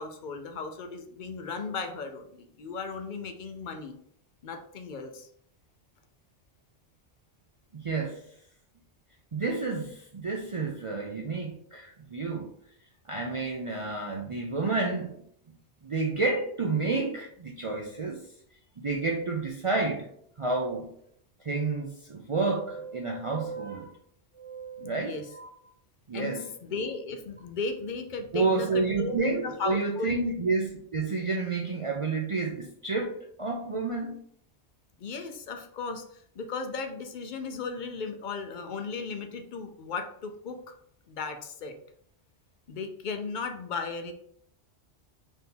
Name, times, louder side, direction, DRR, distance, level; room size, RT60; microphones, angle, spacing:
voice 1, 0.0-3.9 4.4-5.3 24.8-25.2 26.1-26.3 26.6-30.2 35.0-40.6 41.1-41.7 42.7-44.1, left 4 dB, 55° left, 6 dB, 0.6 m, -36 dB
voice 2, 7.8-8.2 9.3-12.5 13.1-15.1 15.8-18.2 18.8-20.1 20.4-20.9 21.4-23.9 24.3-25.5 26.1-26.5 28.3-34.2, right 3 dB, 45° right, -1 dB, 0.4 m, -30 dB
4.2 x 2.7 x 3.6 m, 0.66 s
omnidirectional pair, 1.1 m